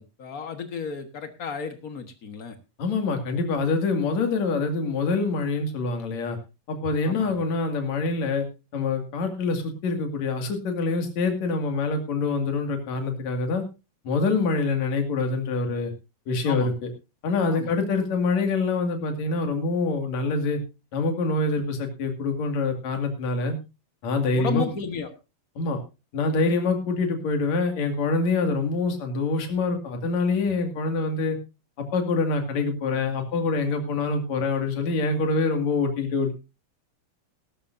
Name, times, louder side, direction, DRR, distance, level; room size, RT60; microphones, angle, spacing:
voice 1, 0.0-2.5 7.1-7.4 16.4-16.7 17.5-17.7 24.3-25.1, left 6 dB, 75° left, 7 dB, 0.8 m, -33 dB
voice 2, 2.8-6.4 6.7-8.5 8.7-13.6 14.0-15.9 16.3-16.7 17.2-20.6 20.9-23.6 24.0-24.7 25.6-25.8 26.1-31.4 31.8-36.3, left 3 dB, 55° left, 5 dB, 3.3 m, -25 dB
18.5 x 12.5 x 2.6 m, 0.29 s
omnidirectional pair, 3.8 m